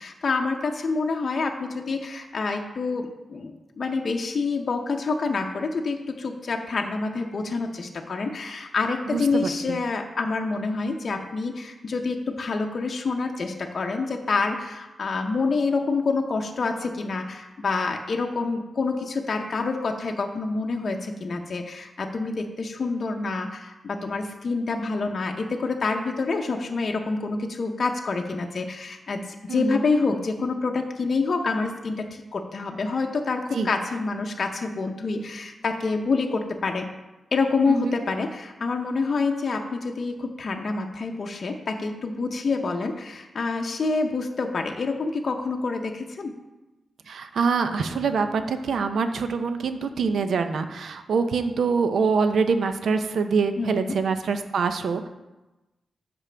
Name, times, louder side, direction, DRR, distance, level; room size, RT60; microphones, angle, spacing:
voice 1, 0.0-36.9 37.3-46.3 53.6-54.0, left 4 dB, 50° left, 2 dB, 0.6 m, -27 dB
voice 2, 9.1-9.5 29.5-29.8 33.5-33.7 37.7-37.9 47.1-55.1, right 5 dB, 75° right, 8 dB, 0.5 m, -25 dB
9.9 x 6.0 x 3.3 m, 1.0 s
wide cardioid pair, 150°, 0 cm